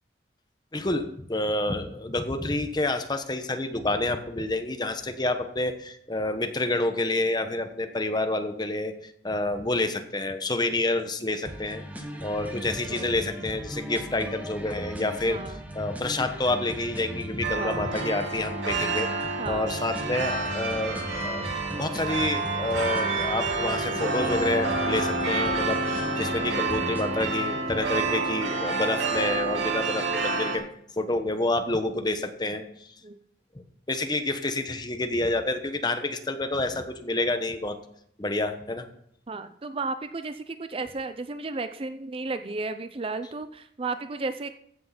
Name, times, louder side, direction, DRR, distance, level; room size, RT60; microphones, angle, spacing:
voice 1, 0.7-11.8 12.2-19.1 19.5-21.4 21.8-30.6 31.0-32.9 33.5-37.8 38.2-38.9, left 2 dB, 25° left, 7 dB, 1.0 m, -28 dB
sound 1, 11.4-27.4, equal, 10° right, 1.2 m, -38 dB
voice 2, 15.3-15.6 17.6-17.8 19.4-20.0 33.0-33.2 39.3-44.5, right 3 dB, 30° right, 10 dB, 0.5 m, -34 dB
sound 2, 17.4-30.6, right 3 dB, 85° right, 2.3 m, -29 dB
15.0 x 6.3 x 5.8 m, 0.70 s
head